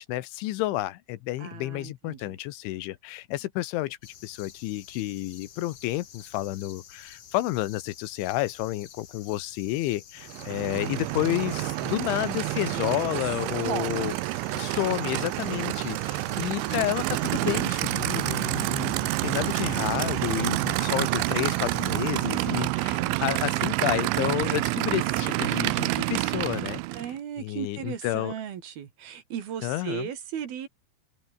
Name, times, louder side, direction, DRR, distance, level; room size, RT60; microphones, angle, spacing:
voice 1, 0.0-4.0 4.2-14.1 14.6-26.8 27.4-28.3 29.6-30.1, left 16 dB, 85° left, 3.5 m, -30 dB
voice 2, 1.4-2.4 13.2-13.4 13.7-14.2 16.2-16.9 22.7-23.4 26.9-30.7, right 9 dB, 60° right, 3.9 m, -37 dB
sound 1, 4.0-22.1, left 8 dB, 55° left, 1.8 m, -49 dB
Aircraft / Idling, 10.2-27.2, right 20 dB, 85° right, 3.2 m, -28 dB
omnidirectional pair, 5.3 m